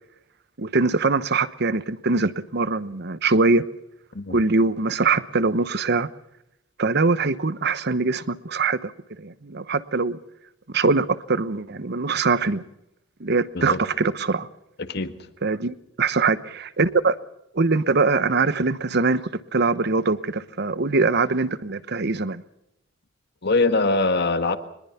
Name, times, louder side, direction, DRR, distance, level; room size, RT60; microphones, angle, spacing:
voice 1, 0.6-3.6 4.3-6.1 6.8-8.9 9.2-10.2 10.7-12.6 13.2-14.5 15.4-17.1 17.5-19.2 19.5-22.4, right 3 dB, 55° right, 15 dB, 1.0 m, -22 dB
voice 2, 14.8-15.2 23.4-24.6, left 3 dB, 55° left, 10 dB, 1.6 m, -22 dB
23.5 x 21.5 x 5.8 m, 0.84 s
head